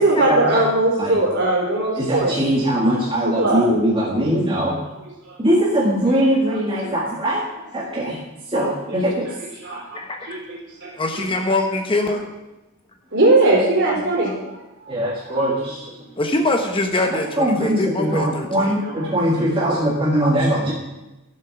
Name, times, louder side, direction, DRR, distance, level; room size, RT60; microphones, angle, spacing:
voice 1, 0.0-2.4 3.2-3.6 5.3-5.6 6.1-7.0 8.5-11.3 12.1-12.2 13.1-14.6 16.0-16.1 18.1-18.2 18.6-19.5, right 2 dB, 50° right, -2 dB, 3.8 m, -22 dB
voice 2, 2.0-4.8 5.4-7.4 7.7-8.2 8.5-9.3 14.9-15.8 17.4-20.7, equal, 25° right, -4 dB, 1.5 m, -21 dB
voice 3, 9.9-10.4 11.0-12.2 16.2-18.8, left 2 dB, 25° left, 3 dB, 1.0 m, -23 dB
12.5 x 7.5 x 5.9 m, 1.0 s
head